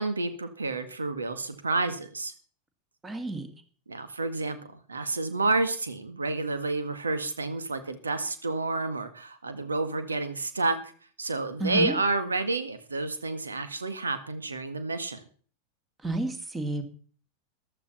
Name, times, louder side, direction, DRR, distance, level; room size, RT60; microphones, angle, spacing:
voice 1, 0.0-2.3 3.9-10.9 11.2-15.2, right 3 dB, 75° right, 10 dB, 1.9 m, -30 dB
voice 2, 3.0-3.5 11.6-12.0 16.0-16.8, right 2 dB, 15° right, 9 dB, 2.2 m, -30 dB
14.5 x 12.0 x 4.2 m, 0.44 s
figure-of-eight pair, 90°, 0 cm